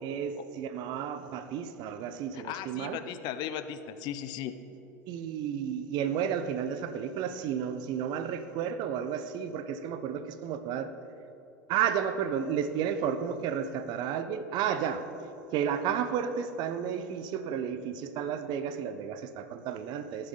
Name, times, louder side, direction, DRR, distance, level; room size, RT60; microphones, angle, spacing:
voice 1, 0.0-3.0 5.1-10.9 11.7-15.1 15.5-20.3, right 8 dB, 50° right, 11 dB, 0.8 m, -32 dB
voice 2, 2.3-4.5, left 10 dB, 50° left, 11 dB, 0.6 m, -37 dB
18.0 x 6.7 x 3.9 m, 3.0 s
hypercardioid pair, 85°, 9 cm